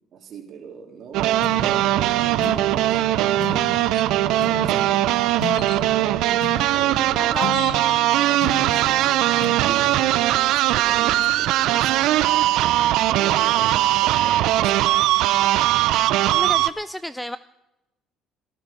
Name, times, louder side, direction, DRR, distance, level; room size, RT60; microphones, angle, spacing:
voice 1, 0.1-3.1 4.3-5.0 6.6-7.7 8.0-12.7 13.1-14.9, right 6 dB, 55° right, 1 dB, 3.6 m, -40 dB
sound 1, 1.1-16.7, right 14 dB, 75° right, 0.6 m, -20 dB
sound 2, 1.4-12.2, left 10 dB, 85° left, 1.1 m, -37 dB
sound 3, 2.9-3.1 3.5-3.6 3.9-4.5 5.5-5.9 7.0-7.1 7.3-8.3, left 8 dB, 55° left, 1.0 m, -40 dB
voice 2, 7.2-7.5 16.3-17.4, left 1 dB, 5° left, 15 dB, 0.4 m, -31 dB
17.5 x 12.5 x 5.5 m, 0.93 s
cardioid pair, 100°, 0 cm